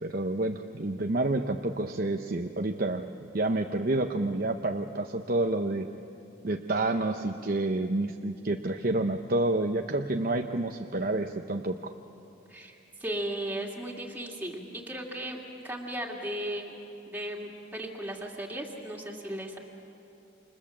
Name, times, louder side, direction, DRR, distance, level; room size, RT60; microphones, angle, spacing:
voice 1, 0.0-3.0 3.3-5.9 6.4-11.9, right 2 dB, 50° right, 5 dB, 0.8 m, -29 dB
voice 2, 12.5-15.4 15.6-16.8 17.1-19.6, right 1 dB, 10° right, -2 dB, 2.5 m, -36 dB
29.5 x 27.0 x 7.4 m, 2.8 s
head